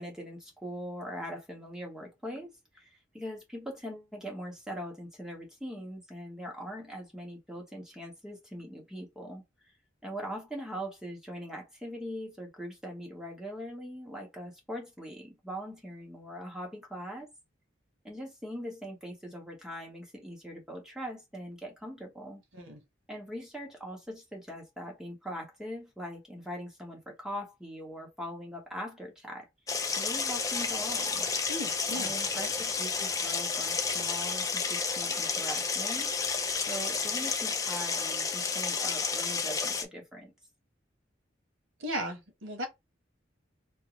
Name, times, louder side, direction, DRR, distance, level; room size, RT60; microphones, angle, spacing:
voice 1, 0.0-9.4 10.0-17.3 18.0-22.4 23.1-29.5 29.9-31.3 31.9-36.1 36.7-40.3, equal, 5° right, 0.8 m, -41 dB
sound 1, 29.7-39.8, left 5 dB, 15° left, 0.3 m, -31 dB
voice 2, 31.5-32.1 41.8-42.7, equal, 90° right, 1.1 m, -36 dB
3.6 x 2.0 x 3.0 m
head